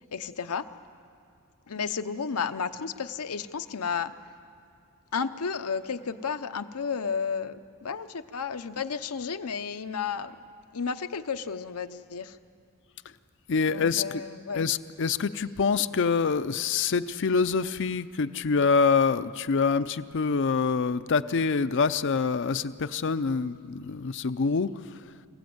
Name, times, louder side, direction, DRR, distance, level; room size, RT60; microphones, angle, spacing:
voice 1, 0.1-0.7 1.7-4.1 5.1-10.4 10.7-12.4 13.7-14.6, left 6 dB, 85° left, 10 dB, 0.8 m, -32 dB
voice 2, 13.5-14.2 14.5-25.0, left 5 dB, 55° left, 11 dB, 0.5 m, -26 dB
25.5 x 16.5 x 7.9 m, 2.5 s
head